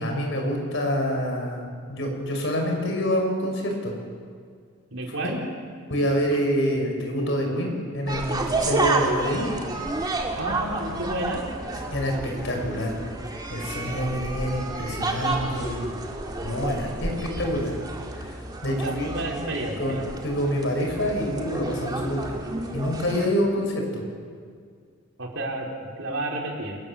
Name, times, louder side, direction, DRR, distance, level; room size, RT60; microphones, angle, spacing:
voice 1, 0.0-3.9 5.9-9.5 11.8-13.0 13.5-15.9 16.4-17.7 18.2-18.3 18.6-19.1 19.8-19.9 20.2-22.4 22.7-24.0, equal, 60° left, 1 dB, 5.6 m, -27 dB
voice 2, 4.9-5.4 10.3-11.5 17.1-17.4 18.7-20.0 25.2-26.8, right 1 dB, 65° right, -1 dB, 4.5 m, -31 dB
sound 1, 8.0-23.3, right 2 dB, 20° right, 2.4 m, -31 dB
27.0 x 18.0 x 7.5 m, 2.1 s
head